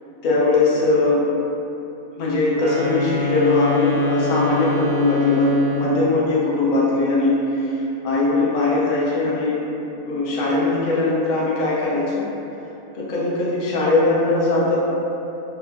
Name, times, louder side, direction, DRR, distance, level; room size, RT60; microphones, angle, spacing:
voice 1, 0.2-1.2 2.2-9.6 10.0-12.2 12.9-14.9, left 3 dB, 75° left, -6 dB, 0.4 m, -20 dB
sound 1, 2.5-6.1, equal, 75° right, 0.4 m, -24 dB
2.8 x 2.2 x 2.5 m, 2.9 s
omnidirectional pair, 1.5 m